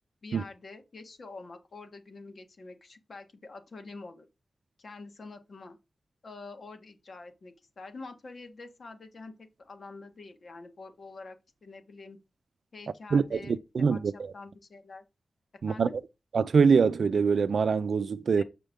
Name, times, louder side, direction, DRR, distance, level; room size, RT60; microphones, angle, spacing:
voice 1, 0.2-4.3 4.8-5.8 6.2-12.2 12.7-13.6 13.9-15.0 15.7-16.0 18.4-18.5, left 3 dB, 50° left, 1.4 m, -46 dB
voice 2, 13.1-14.3 15.6-15.9 16.3-18.4, right 5 dB, 70° right, 0.5 m, -24 dB
7.8 x 4.5 x 3.5 m
wide cardioid pair, 155°, 0 cm